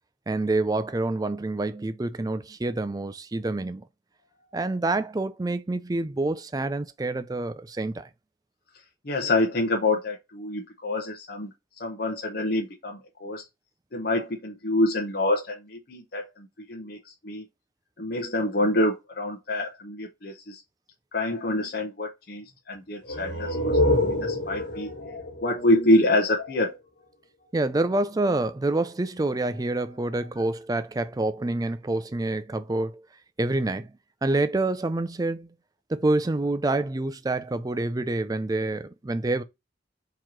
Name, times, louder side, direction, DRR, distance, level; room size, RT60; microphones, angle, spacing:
voice 1, 0.3-3.8 4.5-8.1 27.5-33.0 33.4-33.9 34.2-35.5 35.9-39.4, right 2 dB, 20° right, 0.4 m, -27 dB
voice 2, 9.0-13.4 13.9-17.4 18.0-20.6 21.1-27.1 27.4-27.6 29.4-29.6 30.1-30.3, left 1 dB, 55° left, 0.9 m, -27 dB
sound 1, 23.0-26.6, left 1 dB, 70° left, 1.8 m, -27 dB
4.5 x 3.0 x 3.7 m
head